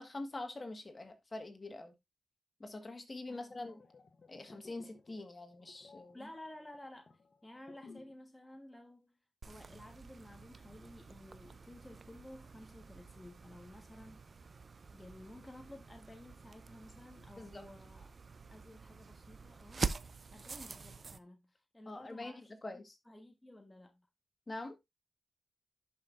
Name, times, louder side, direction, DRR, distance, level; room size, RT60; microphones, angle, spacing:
voice 1, 0.0-1.9 2.6-3.8 4.3-6.2 17.4-17.6 21.9-22.3 22.6-22.9 24.5-24.8, left 2 dB, 30° left, 1.6 m, -44 dB
sound 1, 3.5-8.3 8.5-8.8, left 4 dB, 50° left, 0.9 m, -59 dB
voice 2, 6.1-9.2 9.4-14.2 14.9-18.2 18.5-19.9 20.3-22.6 23.0-24.1, left 1 dB, 10° left, 1.3 m, -54 dB
sound 2, 9.4-21.2, right 4 dB, 45° right, 0.6 m, -46 dB
11.0 x 5.7 x 2.6 m
cardioid pair, 85°, 0 cm